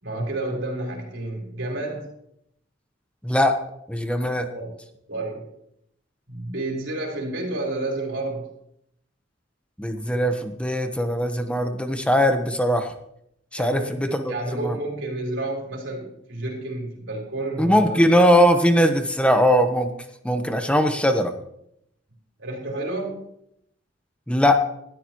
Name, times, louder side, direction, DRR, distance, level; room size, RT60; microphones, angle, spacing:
voice 1, 0.0-2.1 4.5-4.7 5.1-5.5 6.3-8.5 13.6-18.0 22.4-23.2, right 2 dB, 85° right, -1 dB, 4.3 m, -30 dB
voice 2, 3.2-3.6 3.9-4.5 9.8-12.9 13.5-14.7 17.6-19.9 20.2-21.3 24.3-24.6, equal, 5° left, 6 dB, 1.0 m, -20 dB
19.5 x 13.0 x 3.1 m, 0.75 s
head